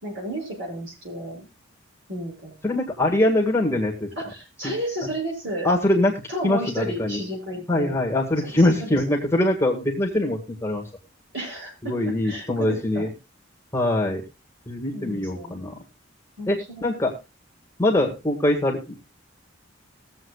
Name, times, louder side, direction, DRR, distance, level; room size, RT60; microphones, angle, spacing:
voice 1, 0.0-1.5 2.1-2.7 3.0-3.1 4.2-5.7 6.3-8.0 8.4-9.0 11.3-13.1 14.9-15.6 16.4-16.8, right 1 dB, 60° right, -1 dB, 6.4 m, -32 dB
voice 2, 2.6-4.1 4.6-4.7 5.6-6.1 6.4-7.2 7.7-10.8 11.8-13.1 13.7-14.2 14.7-15.8 16.5-17.1 17.8-19.0, left 1 dB, 15° left, -1 dB, 1.8 m, -23 dB
21.0 x 7.8 x 2.3 m, 0.28 s
head